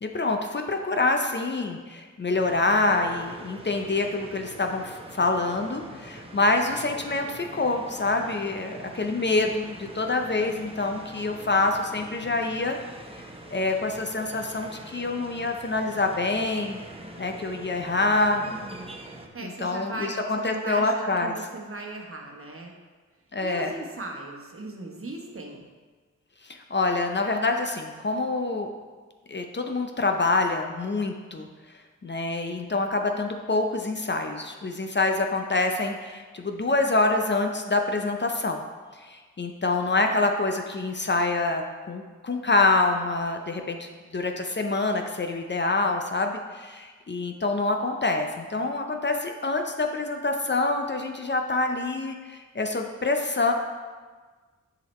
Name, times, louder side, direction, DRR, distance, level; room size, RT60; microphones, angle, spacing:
voice 1, 0.0-12.8 13.1-13.2 13.5-16.8 17.2-18.4 19.4-21.3 23.3-23.7 26.4-28.7 29.3-31.5 32.0-38.6 39.0-53.5, left 3 dB, 35° left, 4 dB, 0.7 m, -26 dB
sound 1, 2.3-19.3, right 1 dB, 20° right, 0.9 m, -44 dB
voice 2, 18.4-18.9 19.3-22.7 23.4-25.6, right 2 dB, 40° right, 1 dB, 1.2 m, -38 dB
7.5 x 5.0 x 3.2 m, 1.4 s
cardioid pair, 45°, 32 cm